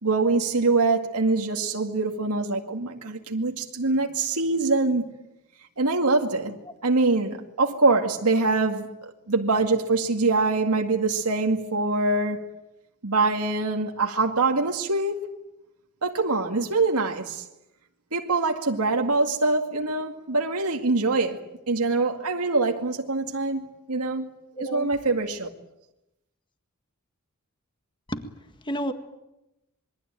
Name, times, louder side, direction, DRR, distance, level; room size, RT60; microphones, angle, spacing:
voice 1, 0.0-5.1 5.8-12.5 13.0-15.3 16.0-17.4 18.1-21.4 21.7-24.3 24.7-25.5, right 3 dB, 90° right, 2.2 m, -24 dB
voice 2, 24.6-24.9 28.1-28.2 28.6-28.9, right 1 dB, 20° left, 1.8 m, -30 dB
26.5 x 22.5 x 9.0 m
head